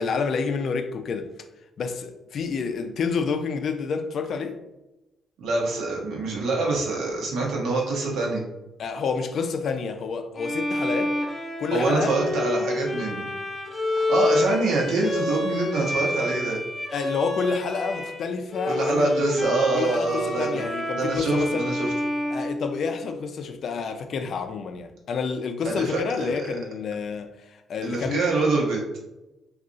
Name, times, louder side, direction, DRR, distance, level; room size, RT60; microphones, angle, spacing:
voice 1, 0.0-1.3 1.8-4.6 8.8-11.2 11.6-12.2 16.9-21.7 22.3-28.2, left 5 dB, 60° left, 0.4 m, -29 dB
voice 2, 5.4-8.4 11.7-13.3 13.9-16.6 18.7-20.6 20.9-21.9 25.6-26.5 27.8-28.8, right 3 dB, 80° right, 0.9 m, -25 dB
Bowed string instrument, 10.4-18.2 18.5-23.3, left 2 dB, 10° left, 0.7 m, -29 dB
2.4 x 2.4 x 3.8 m
cardioid pair, 90°, 0 cm